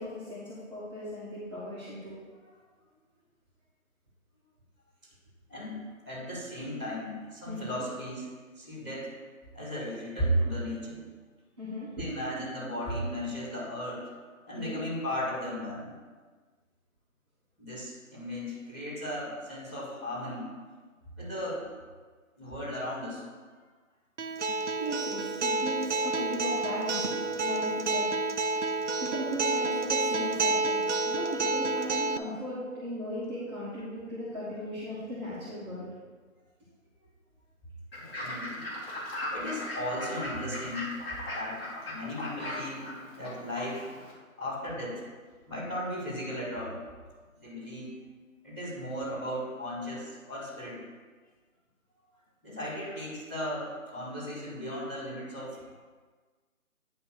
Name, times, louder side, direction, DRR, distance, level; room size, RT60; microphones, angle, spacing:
voice 1, 0.0-2.1 7.4-7.8 11.6-11.9 14.5-14.8 24.8-28.1 29.0-30.8 31.0-35.9, equal, 20° right, -12 dB, 1.7 m, -37 dB
voice 2, 5.5-9.2 9.5-11.0 12.0-14.1 14.5-15.9 17.6-20.5 21.2-21.7 22.4-23.2 38.0-38.7 39.3-40.9 41.3-43.9 44.4-45.1 45.5-46.8 47.4-48.0 48.4-50.8 52.4-55.7, equal, ahead, -13 dB, 2.3 m, -36 dB
Acoustic guitar, 24.2-32.2, right 3 dB, 55° right, 0.5 m, -29 dB
Fowl / Bird, 37.9-44.1, left 1 dB, 45° left, 2.6 m, -38 dB
10.0 x 3.6 x 6.5 m, 1.4 s
figure-of-eight pair, 160°, 42 cm